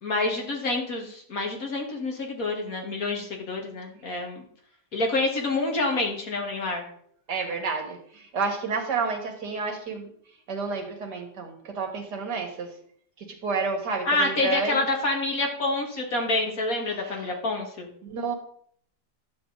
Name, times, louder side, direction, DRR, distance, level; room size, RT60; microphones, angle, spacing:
voice 1, 0.0-4.4 4.9-6.8 14.1-17.9, left 2 dB, 55° left, 2 dB, 2.1 m, -27 dB
voice 2, 7.3-10.1 10.5-12.7 13.2-14.9 16.9-17.3 18.0-18.3, right 4 dB, 75° right, 4 dB, 2.1 m, -30 dB
11.0 x 7.8 x 3.9 m, 0.63 s
omnidirectional pair, 1.8 m